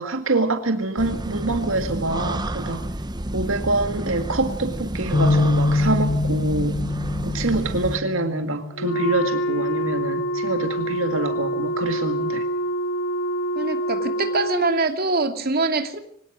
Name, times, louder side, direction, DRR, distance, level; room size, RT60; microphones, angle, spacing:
voice 1, 0.0-2.8 3.3-6.8 7.2-12.5, right 2 dB, 75° right, 7 dB, 2.0 m, -25 dB
sound 1, 1.0-8.0, right 1 dB, 20° right, 1.1 m, -30 dB
sound 2, 5.1-9.4 9.9-10.1 10.9-11.4, left 3 dB, 35° left, 7.0 m, -25 dB
Wind instrument woodwind instrument, 8.7-14.9, right 1 dB, 75° left, 2.0 m, -26 dB
voice 2, 13.5-16.0, right 3 dB, 50° right, 6 dB, 2.6 m, -24 dB
24.5 x 18.5 x 6.4 m, 0.67 s
head